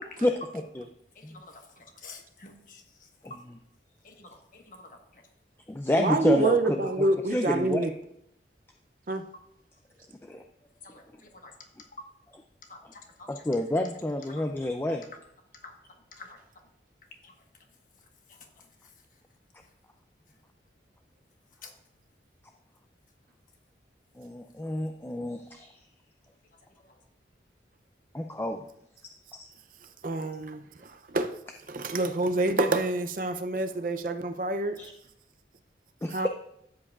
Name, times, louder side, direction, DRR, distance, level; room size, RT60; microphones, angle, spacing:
voice 1, 0.2-0.9 3.2-3.6 5.7-6.6 7.0-7.9 10.3-10.4 13.3-15.0 24.2-25.7 28.1-28.6 29.4-29.5 34.8-34.9 36.0-36.3, left 1 dB, 15° left, 4 dB, 0.4 m, -29 dB
voice 2, 1.2-2.8 4.0-4.9 10.8-11.0 11.4-11.5 12.7-12.8 13.3-13.4 14.3-14.4 15.6-15.7 16.2-16.4 17.2-17.3 21.6-21.7, left 4 dB, 45° left, 3 dB, 1.4 m, -48 dB
voice 3, 5.9-7.9 9.1-9.2 30.0-31.4 31.7-34.8 36.1-36.3, right 2 dB, 50° right, 7 dB, 0.5 m, -27 dB
13.0 x 7.7 x 2.4 m, 0.76 s
head